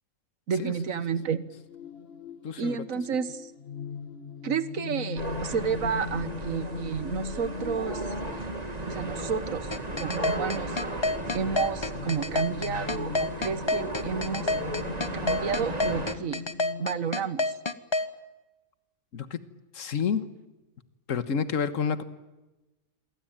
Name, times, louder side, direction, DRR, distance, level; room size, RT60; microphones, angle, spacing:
voice 1, 0.5-1.4 2.6-3.5 4.4-8.1 8.9-9.7 10.0-10.8 11.3-14.5 15.1-16.4 16.8-17.5, right 6 dB, 65° right, 14 dB, 1.7 m, -31 dB
sound 1, 1.2-17.0, left 5 dB, 45° left, 1.9 m, -41 dB
voice 2, 2.4-2.8 19.1-19.4 19.7-20.3 21.1-22.0, left 6 dB, 65° left, 11 dB, 1.7 m, -29 dB
sound 2, 5.2-16.1, right 2 dB, 25° right, 2.4 m, -35 dB
sound 3, 9.7-18.1, left 2 dB, 20° left, 1.0 m, -28 dB
27.5 x 24.0 x 9.0 m, 1.1 s
omnidirectional pair, 1.5 m